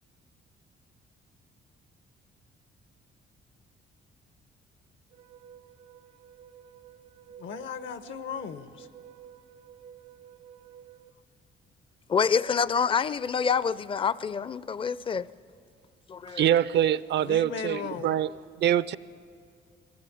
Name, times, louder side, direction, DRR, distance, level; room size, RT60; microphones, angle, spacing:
sound 1, 5.1-11.1, right 9 dB, 90° right, 1.0 m, -51 dB
voice 1, 7.4-8.9 17.2-18.2, left 6 dB, 75° left, 1.0 m, -37 dB
voice 2, 12.1-15.3 16.1-16.6, left 6 dB, 25° left, 0.4 m, -27 dB
voice 3, 16.3-18.9, right 11 dB, 60° right, 0.5 m, -25 dB
20.0 x 16.5 x 8.5 m
cardioid pair, 90°, 20 cm